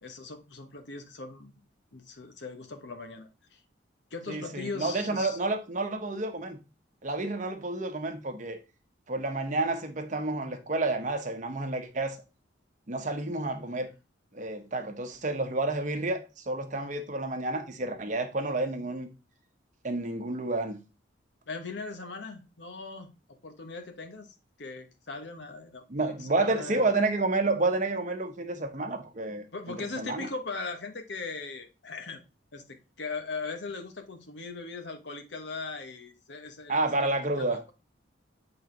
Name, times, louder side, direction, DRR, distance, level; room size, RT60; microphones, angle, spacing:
voice 1, 0.0-1.6 1.9-3.6 4.1-5.4 21.5-23.1 23.4-27.0 29.5-32.2 32.5-37.1 37.4-37.7, left 3 dB, 65° left, 1.1 m, -39 dB
voice 2, 4.3-6.6 7.0-8.6 9.1-12.2 12.9-13.9 14.3-19.1 19.8-20.8 25.9-30.3 36.7-37.6, right 2 dB, 40° right, 0.8 m, -30 dB
7.7 x 4.0 x 3.8 m
head